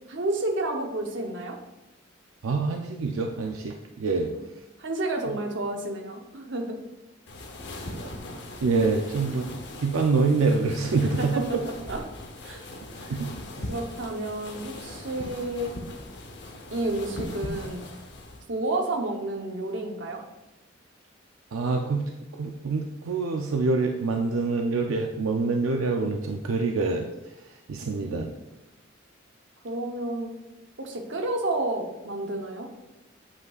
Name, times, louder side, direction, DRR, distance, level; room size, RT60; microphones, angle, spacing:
voice 1, 0.1-1.6 4.3-4.4 4.8-6.8 11.0-12.0 12.4-12.6 13.0-13.2 13.7-15.7 16.7-17.8 18.5-20.2 28.0-28.4 29.6-30.3 30.8-32.7, right 2 dB, 60° right, 2 dB, 0.9 m, -31 dB
voice 2, 2.4-4.3 7.9-8.1 8.6-9.5 9.8-11.4 13.1-13.3 13.6-13.7 21.5-22.0 22.4-27.1 27.7-28.3, right 4 dB, 85° right, 3 dB, 0.5 m, -26 dB
sound 1, 7.3-18.4, left 1 dB, 55° left, 0.9 m, -39 dB
8.2 x 5.3 x 2.4 m, 0.99 s
head